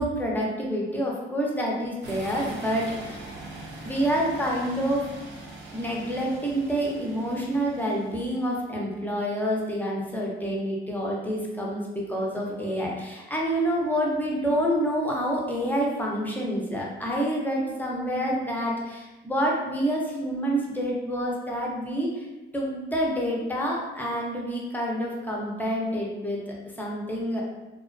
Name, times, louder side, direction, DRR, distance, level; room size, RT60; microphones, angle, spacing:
voice 1, 0.0-3.3 3.8-5.0 5.7-22.3 22.5-26.4 26.8-27.4, equal, 10° left, -3 dB, 0.6 m, -28 dB
sound 1, 2.0-8.6, right 2 dB, 65° right, 0.6 m, -42 dB
2.3 x 2.1 x 2.4 m, 1.1 s
cardioid pair, 90°, 20 cm